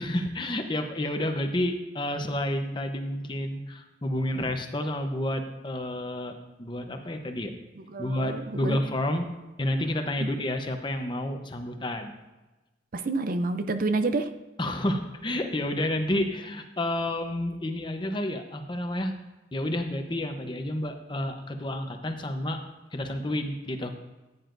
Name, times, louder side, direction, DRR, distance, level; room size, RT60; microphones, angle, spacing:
voice 1, 0.0-7.5 8.0-9.2 9.6-12.1 14.6-19.1 19.5-22.6 22.9-23.9, left 1 dB, 25° left, 5 dB, 0.9 m, -30 dB
voice 2, 7.9-8.8 10.2-10.3 12.9-14.3, right 3 dB, 50° right, 9 dB, 0.5 m, -28 dB
15.0 x 9.8 x 2.6 m, 1.1 s
head